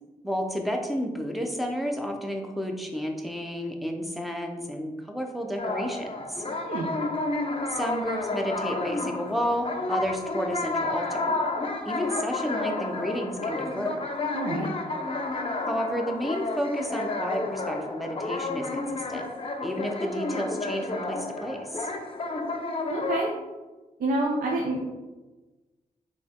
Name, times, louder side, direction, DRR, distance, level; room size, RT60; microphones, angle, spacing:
voice 1, 0.2-6.4 7.7-11.3 11.8-14.1 15.7-19.2 19.6-21.9, equal, ahead, 3 dB, 0.8 m, -31 dB
sound 1, 5.6-23.2, left 2 dB, 40° left, 0.7 m, -31 dB
voice 2, 14.3-14.7 22.9-23.3 24.0-24.9, right 2 dB, 80° right, -1 dB, 0.7 m, -27 dB
4.1 x 3.0 x 3.7 m, 1.2 s
cardioid pair, 55°, 15 cm